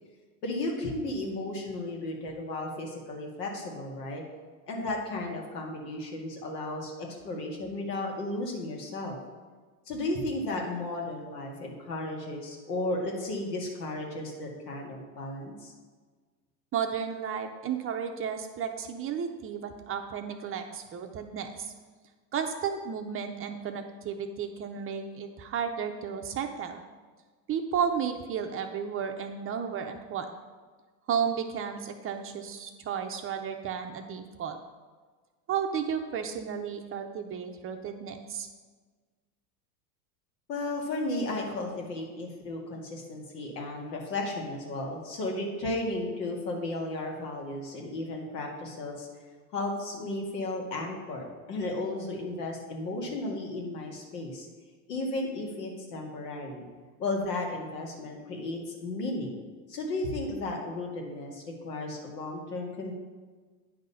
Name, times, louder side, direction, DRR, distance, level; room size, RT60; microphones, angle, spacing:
voice 1, 0.4-4.2 4.7-9.2 9.9-15.7 40.5-49.1 49.5-54.5 54.9-56.7 57.0-59.4 59.7-62.9, left 2 dB, 85° left, 0 dB, 2.0 m, -34 dB
voice 2, 16.7-21.7 22.3-26.8 27.5-30.3 31.1-34.6 35.5-38.5, right 7 dB, 30° right, 5 dB, 0.6 m, -33 dB
9.4 x 3.9 x 5.6 m, 1.4 s
supercardioid pair, 115°, 47 cm